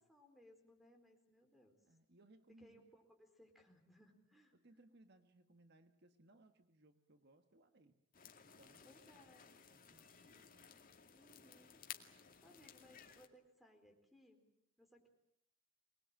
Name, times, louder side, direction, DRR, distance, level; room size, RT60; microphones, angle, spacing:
voice 1, 0.0-1.8 2.5-4.5 8.8-9.5 11.1-14.4 14.8-15.1, equal, ahead, 5 dB, 4.3 m, -66 dB
voice 2, 1.9-2.9 4.5-8.0 8.4-8.9 9.7-10.7, right 2 dB, 55° right, 8 dB, 1.5 m, -67 dB
sound 1, 8.1-13.3, left 8 dB, 45° left, 2.3 m, -57 dB
25.0 x 20.5 x 8.9 m, 0.74 s
head